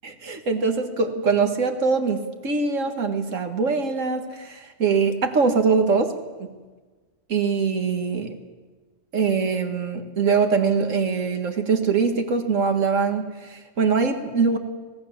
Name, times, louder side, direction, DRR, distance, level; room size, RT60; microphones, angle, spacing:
voice 1, 0.3-6.1 6.4-6.5 7.3-8.4 9.1-14.6, right 5 dB, 80° right, 5 dB, 2.1 m, -23 dB
25.0 x 17.0 x 7.3 m, 1.3 s
omnidirectional pair, 1.3 m